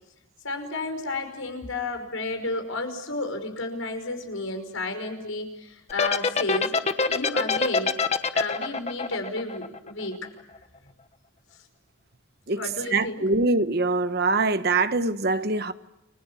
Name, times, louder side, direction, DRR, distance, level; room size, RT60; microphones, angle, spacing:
voice 1, 0.4-6.8 7.1-8.0 8.3-10.3 12.5-13.2, left 2 dB, 85° left, 5.5 m, -32 dB
sound 1, 5.9-10.3, left 4 dB, 30° left, 1.3 m, -24 dB
voice 2, 12.9-15.7, right 3 dB, 50° right, 1.3 m, -23 dB
30.0 x 22.0 x 7.3 m
head